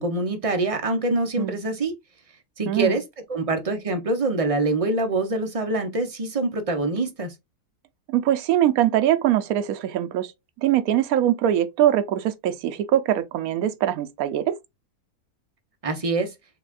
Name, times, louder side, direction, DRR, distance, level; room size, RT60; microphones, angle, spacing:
voice 1, 0.0-1.9 2.6-3.0 3.3-7.3 15.8-16.3, right 2 dB, 30° right, 0.6 m, -25 dB
voice 2, 2.7-3.0 8.1-10.3 10.6-14.6, right 11 dB, 70° right, 1.0 m, -22 dB
6.6 x 2.4 x 2.5 m
omnidirectional pair, 1.7 m